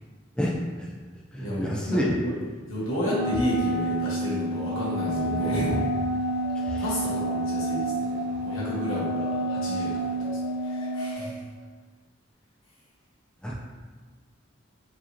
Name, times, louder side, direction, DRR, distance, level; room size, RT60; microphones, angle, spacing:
voice 1, 0.4-0.9 1.3-2.2 5.1-5.8 6.6-6.8 13.4-13.6, equal, 5° left, -4 dB, 0.4 m, -29 dB
voice 2, 1.3-2.4 2.7-5.7 6.8-11.4, equal, 85° left, -7 dB, 1.4 m, -32 dB
Wind instrument woodwind instrument, 3.0-11.2, right 1 dB, 45° right, 0.7 m, -29 dB
sound 1, 4.7-11.3, equal, 55° left, 1.0 m, -38 dB
4.7 x 2.7 x 2.9 m, 1.4 s
head